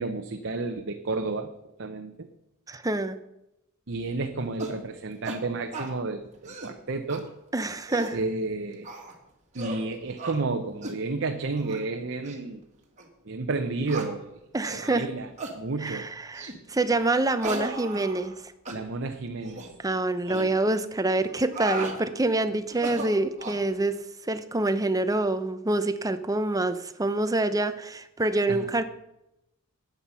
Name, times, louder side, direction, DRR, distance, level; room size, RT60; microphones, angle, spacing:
voice 1, 0.0-1.5 1.8-2.3 3.9-7.3 8.1-8.9 9.5-12.6 13.2-14.3 14.7-16.1 18.7-19.6 20.3-20.5 28.5-28.7, right 3 dB, 55° right, 5 dB, 0.8 m, -31 dB
voice 2, 2.7-3.2 7.5-8.2 14.5-15.1 15.8-18.3 19.8-28.8, right 2 dB, 15° right, 11 dB, 0.7 m, -26 dB
sound 1, 4.6-4.8 5.2-5.4 5.7-5.9 6.3-6.7 7.1-7.2 7.7-8.2 8.8-9.1 9.5-9.8 10.2-10.4 10.8-11.0 11.6-11.8 12.2-12.4 13.0-13.1 13.9-14.1 14.6-14.8 15.4-15.6 16.3-16.6 17.4-18.4 18.7-18.8 19.4-19.7 20.3-20.5 21.3-22.0 22.7-23.6, right 2 dB, 35° right, 2.1 m, -36 dB
13.0 x 9.3 x 5.6 m, 0.88 s
head